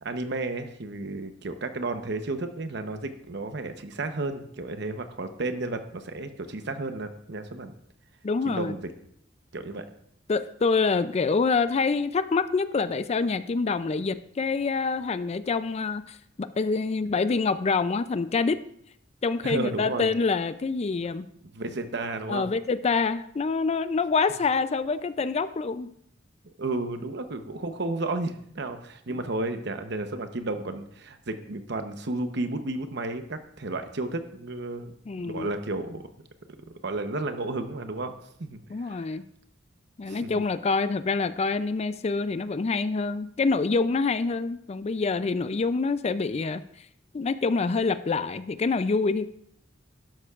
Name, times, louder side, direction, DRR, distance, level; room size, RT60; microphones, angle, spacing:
voice 1, 0.0-7.7 8.5-8.9 9.5-9.9 19.4-20.1 21.5-22.5 26.6-34.9 35.2-36.1 36.6-38.1 38.4-39.0 40.0-40.4, right 2 dB, 65° right, 8 dB, 0.9 m, -32 dB
voice 2, 8.2-8.7 10.3-18.6 19.2-21.3 22.3-25.9 29.1-29.2 35.1-35.5 38.7-39.2 40.0-46.6 47.1-49.3, left 4 dB, 35° left, 13 dB, 0.4 m, -26 dB
12.0 x 11.0 x 2.4 m, 0.69 s
head